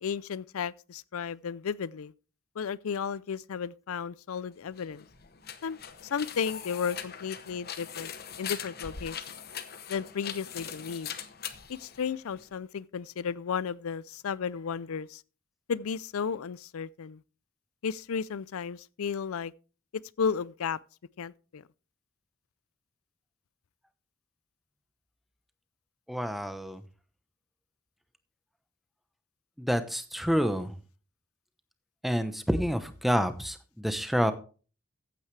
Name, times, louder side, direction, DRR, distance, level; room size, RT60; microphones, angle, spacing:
voice 1, 0.0-2.1 2.6-5.0 5.6-5.8 6.1-8.1 8.4-9.2 9.9-11.1 11.7-15.2 15.7-17.2 17.8-19.5 20.2-20.8 21.2-21.6, left 6 dB, 80° left, 0.4 m, -33 dB
sound 1, 4.7-12.6, left 8 dB, 45° left, 0.9 m, -41 dB
voice 2, 26.1-26.8 29.6-30.8 32.0-34.3, equal, ahead, 0.8 m, -28 dB
14.5 x 9.2 x 3.3 m
head